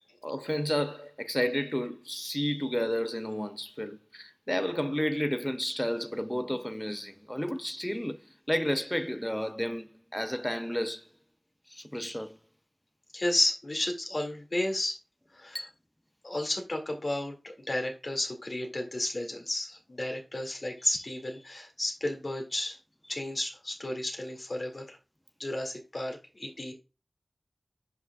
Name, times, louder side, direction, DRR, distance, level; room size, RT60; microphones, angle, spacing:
voice 1, 0.2-11.0 11.7-12.4 15.5-15.7, equal, 10° left, 0.4 m, -32 dB
voice 2, 13.1-15.0 15.3-15.6 16.2-22.8 23.1-25.0 25.4-26.7, left 1 dB, 55° left, 2.0 m, -32 dB
10.5 x 5.9 x 2.2 m
wide cardioid pair, 65°, 0 cm